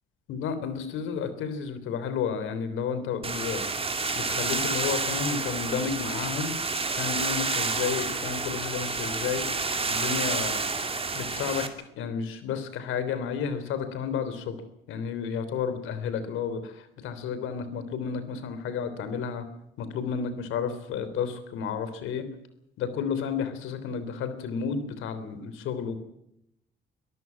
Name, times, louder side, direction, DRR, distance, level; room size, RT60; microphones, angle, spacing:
voice 1, 0.3-3.6 4.2-6.6 6.9-9.5 9.9-10.6 11.1-11.7 12.0-14.6 14.9-19.4 19.8-22.3 22.8-26.0, left 6 dB, 90° left, 11 dB, 3.4 m, -31 dB
sound 1, 3.2-11.7, right 4 dB, 30° right, 2.7 m, -29 dB
23.0 x 14.0 x 9.5 m, 0.77 s
cardioid pair, 90°, 20 cm